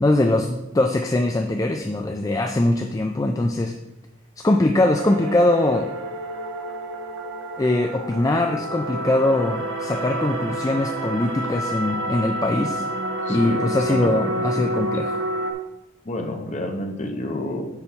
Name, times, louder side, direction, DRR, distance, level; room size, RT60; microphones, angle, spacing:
voice 1, 0.0-3.8 4.4-5.9 7.6-12.8 13.3-15.2, left 1 dB, 15° left, 4 dB, 0.3 m, -22 dB
sound 1, 4.9-15.5, right 1 dB, 75° right, 1.1 m, -29 dB
voice 2, 13.3-14.9 16.0-17.6, left 1 dB, 35° left, 4 dB, 0.9 m, -30 dB
6.8 x 5.4 x 4.4 m, 0.97 s
head